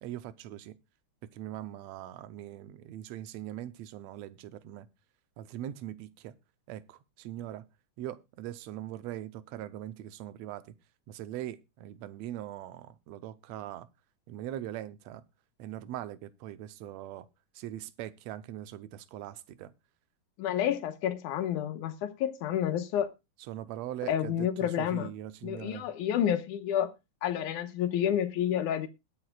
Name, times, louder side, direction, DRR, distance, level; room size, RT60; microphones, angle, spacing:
voice 1, 0.0-0.8 1.3-4.9 5.4-6.3 6.7-7.7 8.0-10.7 11.1-13.9 14.3-15.2 15.6-17.3 17.5-19.7 23.5-25.9, right 12 dB, 70° right, 1.9 m, -41 dB
voice 2, 20.4-23.1 24.0-25.1 25.4-26.9 27.2-28.9, left 10 dB, 85° left, 2.5 m, -29 dB
21.0 x 7.7 x 2.4 m
omnidirectional pair, 3.5 m